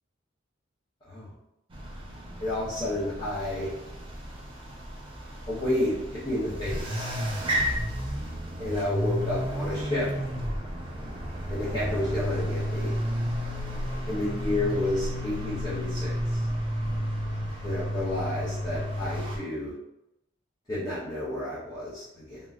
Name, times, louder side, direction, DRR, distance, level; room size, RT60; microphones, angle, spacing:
sound 1, 1.7-19.4, equal, 25° right, 0.4 m, -32 dB
voice 1, 2.4-3.7 5.5-7.2 8.6-10.1 11.5-12.9 14.1-16.4 17.6-19.7 20.7-22.4, left 1 dB, 20° left, -10 dB, 0.7 m, -31 dB
3.7 x 2.0 x 2.3 m, 0.86 s
head